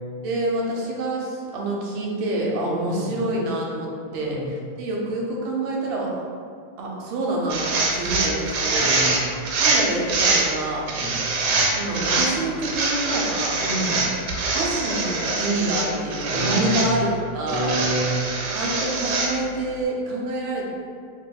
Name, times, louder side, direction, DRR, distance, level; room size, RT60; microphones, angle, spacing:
voice 1, 0.2-6.1 6.8-7.6 7.9-9.0 9.6-10.9 11.7-13.6 14.5-17.8 18.5-20.7, right 1 dB, 90° right, -2 dB, 1.4 m, -27 dB
voice 2, 2.8-3.1 4.1-4.4 8.7-9.2 10.9-11.1 13.6-14.1 16.2-17.0 17.4-18.3, right 1 dB, 50° left, -8 dB, 1.0 m, -29 dB
sound 1, 7.5-10.5 10.9-12.3 12.6-15.9 16.1-16.9 17.5-19.3, right 3 dB, 75° right, 1.1 m, -24 dB
3.4 x 3.1 x 2.2 m, 2.2 s
omnidirectional pair, 2.1 m